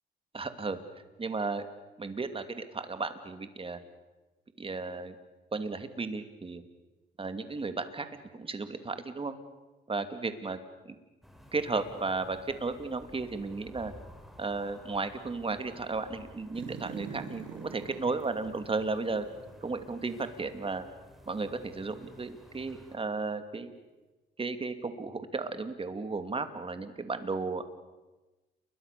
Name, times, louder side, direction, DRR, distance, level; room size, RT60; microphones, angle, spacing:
voice 1, 0.3-0.8 1.2-1.7 2.0-3.8 4.6-5.1 5.5-6.6 7.2-8.1 8.3-9.3 9.9-10.6 10.8-11.0 11.5-13.9 14.4-19.3 19.6-20.9 21.3-23.7 24.4-27.6, right 3 dB, 25° right, 9 dB, 2.6 m, -34 dB
sound 1, 11.2-23.0, equal, ahead, 4.1 m, -53 dB
sound 2, 16.5-19.9 20.2-20.3, right 7 dB, 70° right, 2.8 m, -45 dB
29.5 x 22.5 x 6.9 m, 1.1 s
cardioid pair, 90°, 20 cm